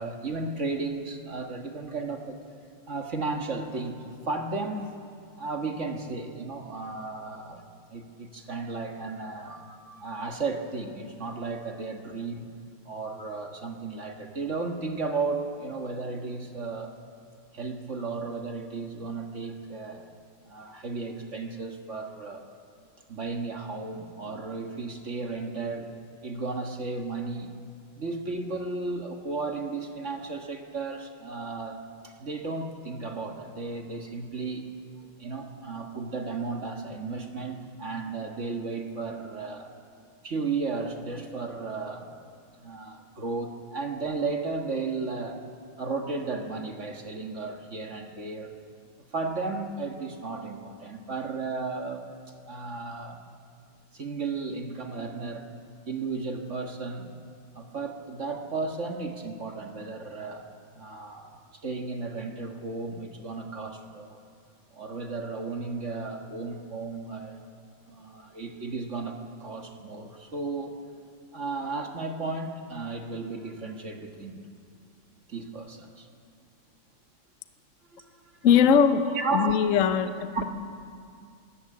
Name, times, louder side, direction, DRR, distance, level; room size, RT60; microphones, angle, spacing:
voice 1, 0.0-2.4 2.9-4.9 5.4-7.6 7.9-12.5 12.8-16.9 17.5-20.1 20.5-22.4 23.1-25.9 26.2-27.5 28.0-34.7 35.2-39.7 40.2-42.1 42.5-45.4 45.8-48.5 49.1-52.0 52.5-53.2 53.9-55.5 55.9-57.1 57.5-60.5 60.7-64.2 64.7-67.5 67.9-70.8 71.3-74.4 75.3-76.1 77.9-78.0 79.1-79.7 80.3-80.4, right 3 dB, 35° right, 3 dB, 1.6 m, -34 dB
voice 2, 78.4-79.1 79.3-80.4, left 7 dB, 55° left, 10 dB, 0.9 m, -21 dB
22.5 x 17.0 x 8.6 m, 2.3 s
omnidirectional pair, 2.4 m